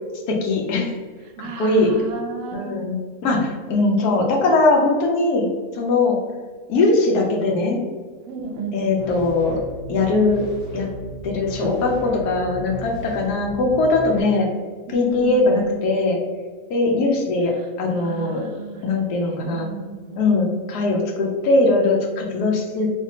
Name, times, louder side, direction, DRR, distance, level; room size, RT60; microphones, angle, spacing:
voice 1, 0.3-0.9 1.6-1.9 2.5-3.0 3.2-5.5 5.7-6.2 6.7-7.8 8.7-9.6 9.9-10.4 10.7-10.9 11.2-14.5 14.9-16.2 16.7-18.5 18.8-19.7 20.2-22.9, left 2 dB, 85° left, 0 dB, 1.2 m, -20 dB
voice 2, 1.4-2.8 8.3-9.1 14.9-15.8 17.9-20.2, right 2 dB, 65° right, 2 dB, 0.9 m, -33 dB
sound 1, 9.0-14.2, right 2 dB, 55° left, 1.8 m, -36 dB
3.5 x 2.7 x 2.8 m, 1.5 s
omnidirectional pair, 1.6 m